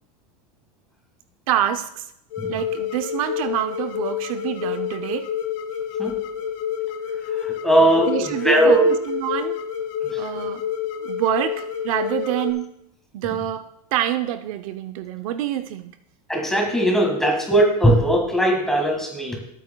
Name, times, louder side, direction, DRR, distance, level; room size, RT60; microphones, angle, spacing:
voice 1, 1.5-2.1 2.5-5.3 8.1-9.6 10.2-10.6 11.0-12.7 13.1-15.9, right 12 dB, 65° right, 9 dB, 0.6 m, -26 dB
sound 1, 2.3-12.5, left 9 dB, 60° left, 1.6 m, -29 dB
voice 2, 7.4-8.9 10.1-10.2 16.3-19.4, right 1 dB, ahead, 0 dB, 1.7 m, -19 dB
18.0 x 9.1 x 2.2 m, 0.77 s
supercardioid pair, 170°, 19 cm